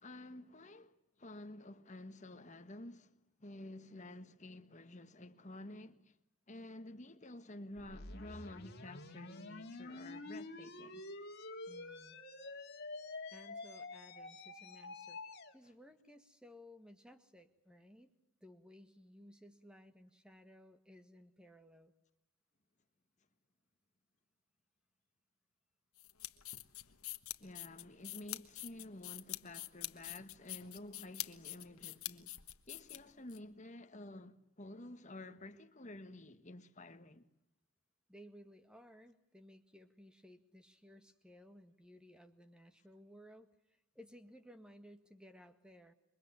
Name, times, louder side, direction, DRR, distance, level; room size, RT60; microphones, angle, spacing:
voice 1, 0.0-6.1 6.5-11.1 26.9-27.0 27.4-32.4 32.7-37.3, left 1 dB, 35° left, 1.4 m, -51 dB
sound 1, 7.8-15.5, left 2 dB, 50° left, 2.3 m, -48 dB
voice 2, 11.7-12.2 13.3-15.2 15.5-18.1 18.4-21.9 38.1-45.9, equal, 5° right, 1.8 m, -59 dB
sound 2, 26.0-33.4, left 16 dB, 85° left, 1.3 m, -45 dB
28.0 x 23.5 x 8.9 m
head